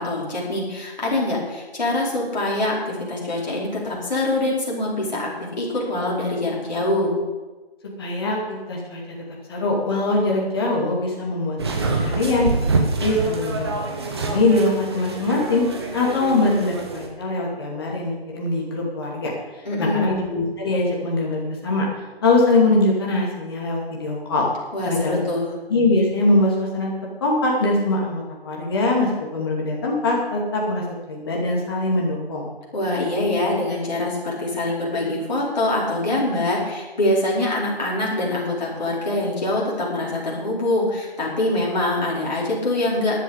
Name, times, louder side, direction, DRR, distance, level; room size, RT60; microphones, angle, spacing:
voice 1, 0.0-7.1 19.6-20.2 24.7-25.5 32.7-43.2, left 2 dB, 45° left, -5 dB, 5.0 m, -24 dB
voice 2, 8.0-9.0 9.5-12.5 13.0-13.7 14.0-15.6 15.9-19.3 19.8-21.9 22.2-24.5 24.8-25.2 25.7-32.5, left 2 dB, 25° left, -2 dB, 2.6 m, -22 dB
sound 1, 11.6-17.1, right 3 dB, 25° right, 1.4 m, -26 dB
14.0 x 11.0 x 5.2 m, 1.2 s
figure-of-eight pair, 160°, 31 cm